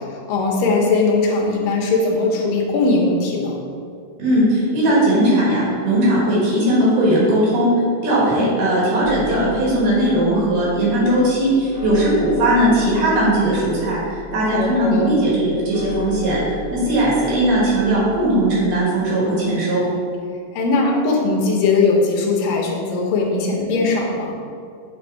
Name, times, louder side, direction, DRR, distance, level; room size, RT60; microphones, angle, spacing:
voice 1, 0.0-3.6 14.5-15.1 20.5-24.4, left 3 dB, 80° left, 0 dB, 2.5 m, -19 dB
voice 2, 4.2-7.7 8.0-19.8, right 1 dB, 70° right, -6 dB, 3.4 m, -18 dB
sound 1, 9.0-18.8, left 1 dB, 50° right, 1.5 m, -35 dB
8.8 x 3.4 x 4.5 m, 2.3 s
omnidirectional pair, 4.0 m